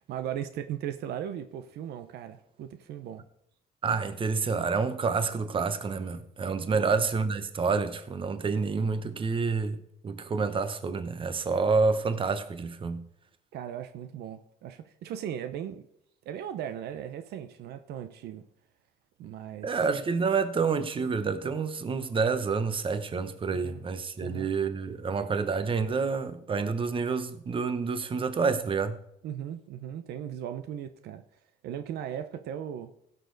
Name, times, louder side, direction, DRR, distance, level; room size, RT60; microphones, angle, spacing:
voice 1, 0.1-3.2 6.7-7.0 13.5-15.9 16.3-18.4 19.2-19.8 23.5-23.8 24.2-24.5 29.2-31.2 31.6-32.9, right 10 dB, 75° right, 0.8 m, -37 dB
voice 2, 3.8-9.8 10.0-13.0 19.6-29.0, right 4 dB, 30° right, 1.0 m, -28 dB
16.5 x 6.7 x 4.0 m
cardioid pair, 110°, 17 cm